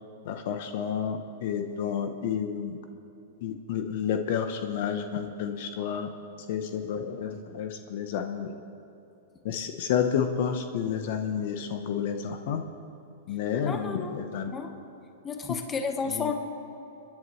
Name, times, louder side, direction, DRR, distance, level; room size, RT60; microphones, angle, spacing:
voice 1, 0.2-2.8 3.4-6.1 6.5-8.5 9.4-12.6 13.3-14.5 16.0-16.3, left 8 dB, 60° left, 7 dB, 0.9 m, -30 dB
voice 2, 13.6-14.1 14.5-14.7 15.2-16.3, left 5 dB, 20° left, 5 dB, 1.2 m, -32 dB
28.5 x 10.5 x 3.2 m, 2.9 s
hypercardioid pair, 135°, 0 cm